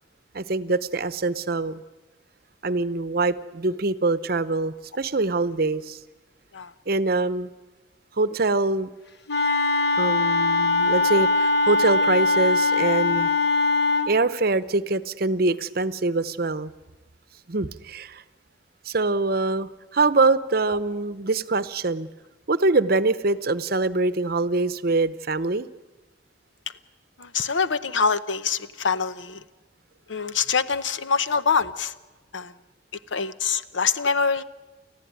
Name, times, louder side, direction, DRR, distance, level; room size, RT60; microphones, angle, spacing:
voice 1, 0.3-1.8 2.6-6.0 6.9-7.5 8.2-8.9 10.0-13.3 14.1-16.7 17.5-18.2 18.8-22.1 22.5-25.7, right 3 dB, 50° right, 14 dB, 0.8 m, -24 dB
Wind instrument woodwind instrument, 9.3-14.1, left 3 dB, 60° left, 1.7 m, -21 dB
voice 2, 27.2-29.4 30.1-31.9 32.3-32.5 33.1-34.4, left 5 dB, 80° left, 13 dB, 0.9 m, -24 dB
30.0 x 14.5 x 9.4 m, 1.2 s
head